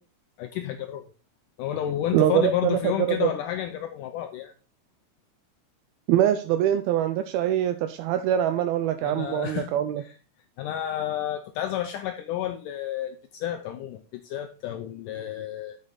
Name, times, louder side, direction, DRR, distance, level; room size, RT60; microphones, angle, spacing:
voice 1, 0.4-1.0 1.6-4.5 9.0-9.7 10.0-10.2 10.6-15.8, left 11 dB, 90° left, 1.8 m, -31 dB
voice 2, 2.1-2.8 3.2-3.3 6.1-10.0, right 11 dB, 80° right, 2.4 m, -23 dB
8.5 x 7.0 x 4.0 m
omnidirectional pair, 4.4 m